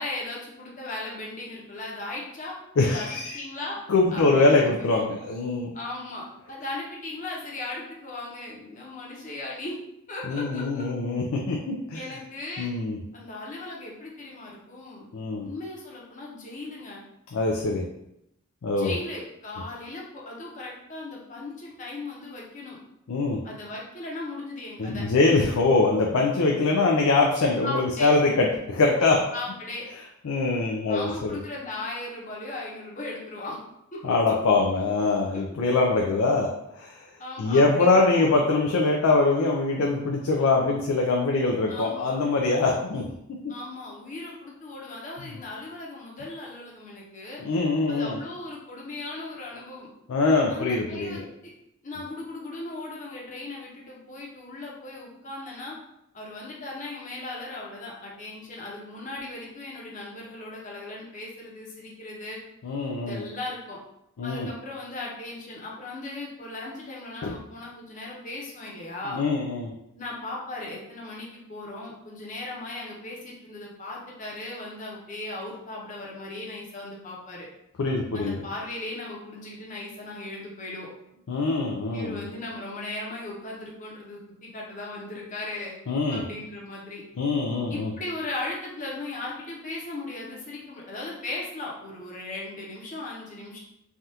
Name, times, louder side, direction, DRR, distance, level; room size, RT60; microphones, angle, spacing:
voice 1, 0.0-2.6 2.8-3.8 4.1-4.8 5.7-9.7 10.1-10.8 11.9-12.7 13.1-15.1 15.4-17.0 18.8-22.8 23.4-25.1 27.6-28.1 29.3-29.9 30.9-33.6 33.9-34.0 37.2-38.4 41.7-42.2 43.5-47.4 47.9-49.9 50.5-51.2 51.8-55.8 56.1-62.4 63.0-63.8 64.2-69.2 69.9-77.5 78.1-80.9 81.9-84.2 84.5-85.8 86.1-87.0 87.7-93.6, left 2 dB, 40° left, -3 dB, 0.8 m, -37 dB
voice 2, 2.8-3.4 3.9-5.7 10.3-12.0 12.6-13.0 15.1-15.5 17.3-17.8 18.6-18.9 23.1-23.4 24.8-29.2 30.2-31.4 34.0-36.5 36.8-37.0 37.4-43.0 47.4-48.2 50.1-51.2 62.6-63.2 64.2-64.5 67.2-67.3 69.1-69.7 77.8-78.4 81.3-82.2 85.9-86.2 87.2-87.9, left 3 dB, 80° left, 0 dB, 0.4 m, -23 dB
3.4 x 2.3 x 2.7 m, 0.81 s
head